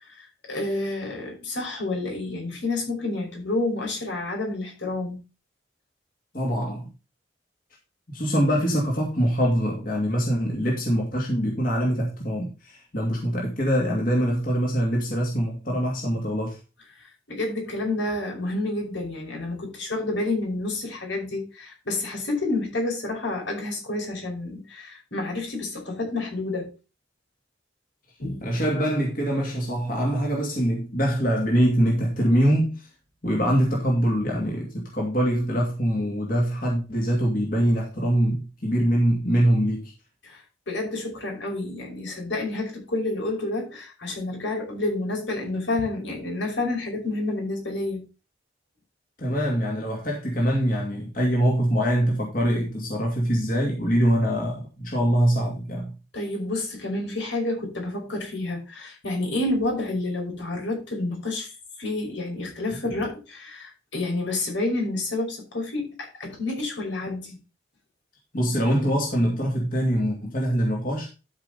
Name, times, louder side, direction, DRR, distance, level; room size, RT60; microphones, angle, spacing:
voice 1, 0.0-5.2 17.0-26.7 28.2-28.5 40.2-48.0 56.1-67.4, left 2 dB, 85° left, 5.3 m, -29 dB
voice 2, 6.3-6.9 8.1-16.6 28.4-32.8 33.2-39.9 49.2-55.9 68.3-71.1, equal, 50° left, 2.6 m, -24 dB
12.5 x 5.3 x 4.1 m
head